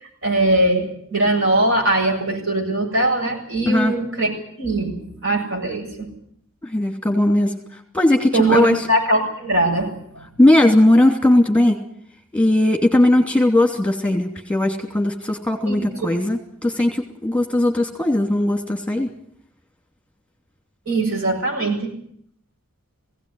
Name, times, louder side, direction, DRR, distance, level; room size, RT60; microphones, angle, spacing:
voice 1, 0.2-4.3 4.6-6.1 8.3-10.3 15.7-15.9 20.9-21.9, right 1 dB, 70° right, 1 dB, 7.7 m, -21 dB
voice 2, 6.6-7.5 7.9-8.8 10.4-11.8 12.3-19.1, left 1 dB, 5° left, 4 dB, 2.8 m, -18 dB
19.5 x 17.0 x 9.9 m, 0.67 s
head